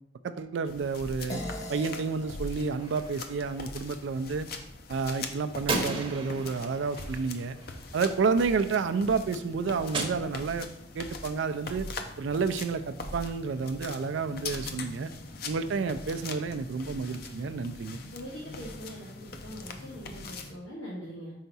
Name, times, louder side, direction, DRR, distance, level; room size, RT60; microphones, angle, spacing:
voice 1, 0.2-1.4 1.7-4.5 4.9-7.6 7.9-10.7 10.9-11.9 12.2-15.1 15.5-18.0, right 5 dB, 70° right, 10 dB, 0.4 m, -30 dB
sound 1, 0.7-20.5, left 3 dB, 50° left, 0.6 m, -42 dB
sound 2, 1.3-6.0, left 1 dB, 35° left, 1.0 m, -43 dB
Gunshot gunfire, 2.7-3.7 5.7-8.1 9.9-10.9, right 2 dB, 30° right, 0.8 m, -36 dB
voice 2, 18.1-21.3, equal, 85° left, -7 dB, 1.8 m, -42 dB
5.6 x 4.6 x 4.0 m, 0.80 s
head